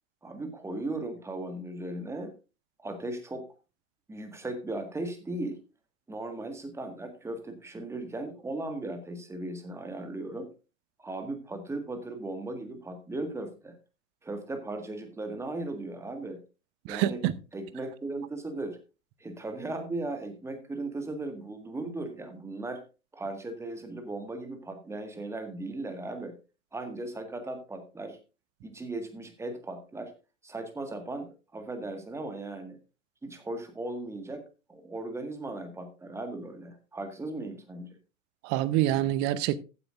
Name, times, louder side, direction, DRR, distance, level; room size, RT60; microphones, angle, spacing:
voice 1, 0.2-2.3 2.8-3.4 4.1-5.6 6.1-10.5 11.0-13.7 14.2-16.4 16.9-17.2 17.5-18.8 19.2-22.8 23.1-26.3 26.7-28.2 28.6-30.1 30.4-32.8 33.2-34.4 34.7-37.9, right 2 dB, 5° right, 1.8 m, -37 dB
voice 2, 16.9-17.3 38.4-39.5, right 13 dB, 30° right, 0.8 m, -26 dB
14.5 x 9.7 x 2.5 m
figure-of-eight pair, 95°, 38 cm